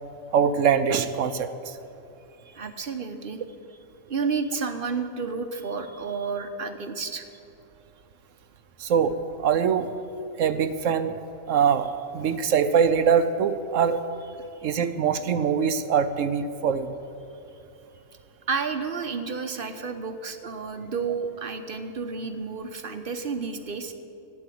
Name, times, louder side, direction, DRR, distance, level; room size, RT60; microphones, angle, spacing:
voice 1, 0.3-1.7 8.8-9.1 9.4-9.9 10.4-11.1 11.5-14.0 14.6-16.9, right 7 dB, 70° right, 10 dB, 0.9 m, -23 dB
voice 2, 2.5-3.4 3.7-3.8 4.1-7.2 14.4-14.5 18.5-23.9, right 5 dB, 45° right, 7 dB, 0.9 m, -31 dB
12.0 x 8.4 x 9.9 m, 2.8 s
omnidirectional pair, 1.4 m